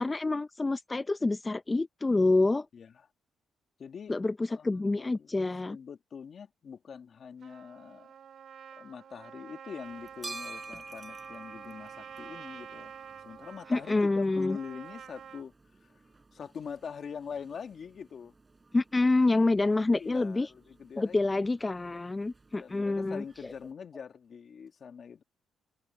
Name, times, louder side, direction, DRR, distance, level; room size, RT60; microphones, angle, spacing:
voice 1, 0.0-2.7 4.1-5.8 13.7-14.6 18.7-20.5 21.0-23.2, left 2 dB, 20° left, 0.5 m, -27 dB
voice 2, 2.7-3.1 3.8-4.2 4.5-8.1 8.8-12.9 13.2-15.5 15.8-16.0 16.3-18.3 20.0-21.2 22.6-25.2, left 6 dB, 50° left, 1.9 m, -43 dB
Trumpet, 7.4-15.5, right 8 dB, 60° right, 2.6 m, -48 dB
sound 1, 9.8-23.7, right 3 dB, 25° right, 6.6 m, -51 dB
cardioid pair, 90°, 0 cm